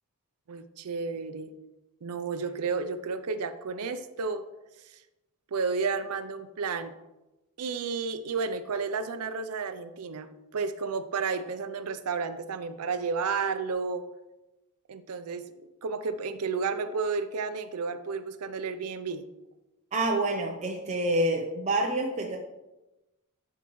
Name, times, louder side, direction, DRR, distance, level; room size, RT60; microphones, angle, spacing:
voice 1, 0.5-1.5 2.0-4.4 4.9-5.0 5.5-6.9 7.6-14.1 14.9-15.5 15.8-19.2, right 5 dB, 80° right, 10 dB, 0.5 m, -32 dB
voice 2, 19.9-22.4, right 1 dB, 30° right, 0 dB, 0.6 m, -27 dB
11.0 x 4.6 x 3.1 m, 1.0 s
head